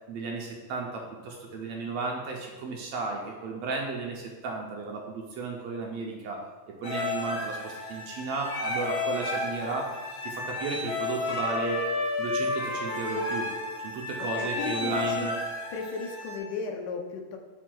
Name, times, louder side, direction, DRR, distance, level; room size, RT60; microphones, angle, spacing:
voice 1, 0.1-6.5 6.8-10.0 10.2-11.9 12.2-13.5 13.8-15.4, right 3 dB, 75° right, 0 dB, 1.6 m, -34 dB
sound 1, 6.8-16.4, left 2 dB, 55° left, 1.9 m, -32 dB
voice 2, 14.2-15.3 15.7-17.4, left 5 dB, 85° left, 3 dB, 2.1 m, -35 dB
7.1 x 5.9 x 2.2 m, 1.3 s
omnidirectional pair, 3.4 m